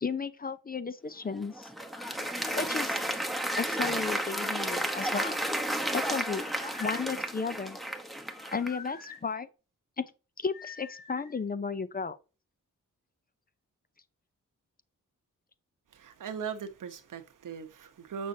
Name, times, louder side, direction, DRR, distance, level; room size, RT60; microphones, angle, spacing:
voice 1, 0.0-1.7 2.6-3.0 3.6-5.4 5.9-7.8 8.5-9.5 10.0-10.1 10.4-12.2, left 5 dB, 30° left, 0.5 m, -34 dB
Applause, 1.3-8.9, right 1 dB, ahead, 1.0 m, -32 dB
sound 1, 1.8-2.7 4.0-4.9 6.2-7.1 8.3-9.2 10.5-11.4, left 6 dB, 85° left, 1.9 m, -47 dB
voice 2, 15.9-18.3, right 6 dB, 75° right, 1.0 m, -39 dB
7.2 x 6.2 x 2.7 m
cardioid pair, 75°, 32 cm